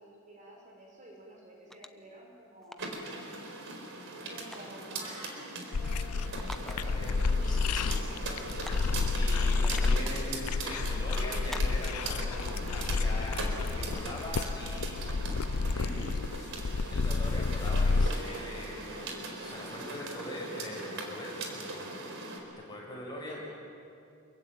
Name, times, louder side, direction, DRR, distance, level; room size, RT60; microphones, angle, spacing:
voice 1, 0.0-2.9 4.3-7.4 9.3-9.8 22.9-23.4, equal, 35° right, -2 dB, 5.7 m, -51 dB
sound 1, 1.7-2.1 2.6-2.9 4.5-4.8 6.4-7.0 7.3-7.4 8.6-9.0 9.6-10.1 11.5-12.1, equal, ahead, 0.7 m, -44 dB
hail on car, 2.8-22.4, right 2 dB, 55° right, 4.3 m, -40 dB
sound 2, 5.7-18.1, left 3 dB, 85° left, 0.6 m, -30 dB
voice 2, 6.6-8.0 9.1-15.0 15.7-16.2 16.9-21.9 22.7-23.4, left 1 dB, 20° left, -3 dB, 7.0 m, -42 dB
28.0 x 23.5 x 9.3 m, 2.5 s
head